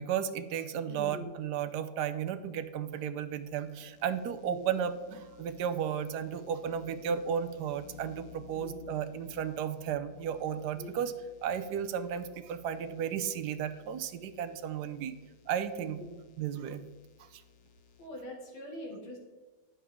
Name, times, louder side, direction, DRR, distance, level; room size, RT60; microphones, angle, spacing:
voice 1, 0.0-11.1 11.4-15.1 15.5-16.0 16.4-16.8 17.3-17.4, right 8 dB, 70° right, 10 dB, 1.0 m, -34 dB
voice 2, 0.9-1.3 4.4-4.6 8.5-8.8 10.7-10.9 15.9-16.2 18.0-19.2, left 2 dB, 85° left, -2 dB, 3.2 m, -43 dB
sound 1, 2.3-18.1, left 7 dB, 70° left, 0.8 m, -57 dB
9.9 x 7.0 x 3.6 m, 1.2 s
omnidirectional pair, 2.1 m